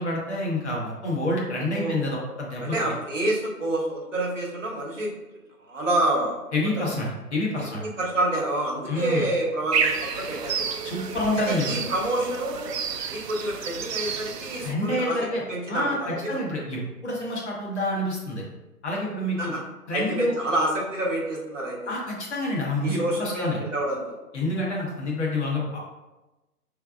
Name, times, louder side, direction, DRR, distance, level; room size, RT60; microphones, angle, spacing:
voice 1, 0.0-2.9 6.5-7.8 8.9-9.3 10.8-11.8 14.6-15.4 15.7-18.4 18.8-19.5 19.9-20.3 21.9-23.6 24.3-25.8, left 1 dB, 45° left, -3 dB, 1.3 m, -28 dB
voice 2, 1.7-2.1 2.6-5.1 5.6-6.9 7.6-10.6 11.4-12.7 13.1-16.4 19.4-19.6 19.9-21.8 22.8-24.2, right 1 dB, 55° right, -2 dB, 1.2 m, -28 dB
sound 1, 9.7-14.7, right 6 dB, 85° right, 0.5 m, -30 dB
5.3 x 3.4 x 2.4 m, 1.1 s
figure-of-eight pair, 145°, 47 cm